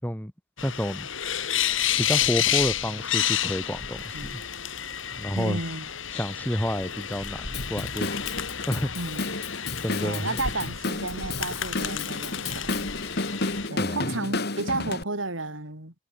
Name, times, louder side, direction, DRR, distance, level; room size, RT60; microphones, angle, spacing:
sound 1, 0.6-13.7, left 10 dB, 80° left, 4.3 m, -30 dB
voice 1, 0.6-1.1 2.0-4.4 5.2-5.6 6.1-8.1 8.7-8.9 9.8-10.3 13.8-14.0, equal, 10° left, 4.1 m, -29 dB
voice 2, 5.4-5.9 8.9-9.4 10.0-12.9 13.7-15.9, right 2 dB, 85° right, 5.9 m, -33 dB
Drum kit / Drum, 7.5-15.0, left 2 dB, 55° left, 2.6 m, -32 dB
head